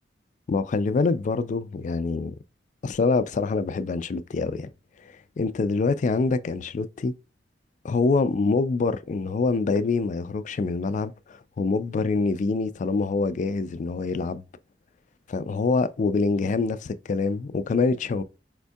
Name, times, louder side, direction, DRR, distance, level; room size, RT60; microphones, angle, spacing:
voice 1, 0.5-2.4 2.8-4.7 5.4-7.1 7.8-11.1 11.6-14.4 15.3-18.2, left 4 dB, 45° left, 0.3 m, -25 dB
4.3 x 2.6 x 2.2 m
head